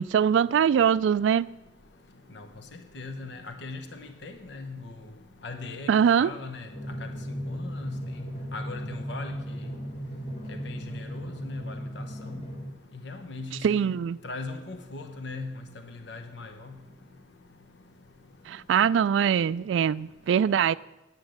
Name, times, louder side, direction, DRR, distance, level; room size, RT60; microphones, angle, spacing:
voice 1, 0.0-1.5 5.9-6.3 13.6-14.2 18.5-20.8, right 8 dB, 80° right, 0.3 m, -22 dB
voice 2, 2.9-4.8 5.4-5.9 6.2-6.7 7.0-7.1 7.5-7.9 8.5-9.4 10.5-12.3 13.0-13.9 14.2-15.5 16.1-16.7, left 3 dB, 70° left, 0.9 m, -39 dB
Drum, 6.7-12.7, equal, 35° left, 1.9 m, -36 dB
9.4 x 9.0 x 6.5 m
head